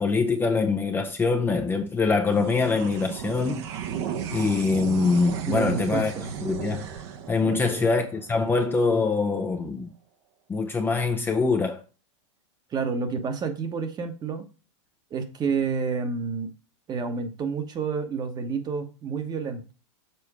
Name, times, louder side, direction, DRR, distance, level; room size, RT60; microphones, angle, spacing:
voice 1, 0.0-3.7 4.3-6.1 6.4-6.9 7.3-9.9 10.5-11.8, left 4 dB, 15° left, 0.6 m, -24 dB
sound 1, 2.2-9.0, right 8 dB, 55° right, 1.0 m, -35 dB
voice 2, 5.5-6.3 7.4-7.9 12.7-14.5 15.1-16.5 16.9-19.7, right 5 dB, 25° right, 1.1 m, -29 dB
7.0 x 4.3 x 4.8 m
hypercardioid pair, 125°, 16 cm